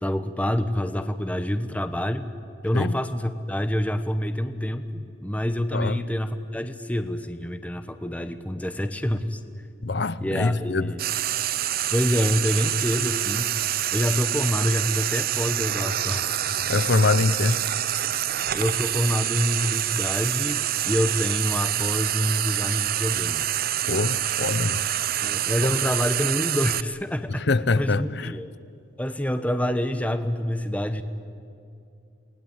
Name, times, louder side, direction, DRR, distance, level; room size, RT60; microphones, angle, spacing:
voice 1, 0.0-2.3 2.6-9.4 10.2-11.0 11.9-13.5 13.9-16.4 18.5-23.5 25.2-27.4 27.8-28.5 29.0-31.0, equal, 10° left, 1.0 m, -27 dB
voice 2, 5.7-6.0 9.8-10.9 16.7-17.6 23.9-24.8 25.6-25.7 27.4-28.3, left 3 dB, 60° left, 0.8 m, -24 dB
Frying (food), 11.0-26.8, right 12 dB, 50° right, 0.6 m, -26 dB
28.5 x 19.5 x 8.9 m
head